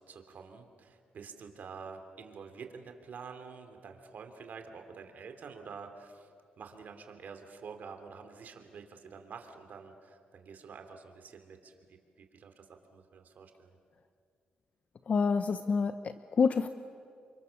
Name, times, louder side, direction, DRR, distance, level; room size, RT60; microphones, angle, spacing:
voice 1, 0.0-13.8, right 5 dB, 60° right, 5 dB, 3.2 m, -48 dB
voice 2, 15.1-16.7, left 5 dB, 50° left, 10 dB, 0.9 m, -28 dB
29.5 x 25.0 x 7.2 m, 2.3 s
cardioid pair, 75°, 3 cm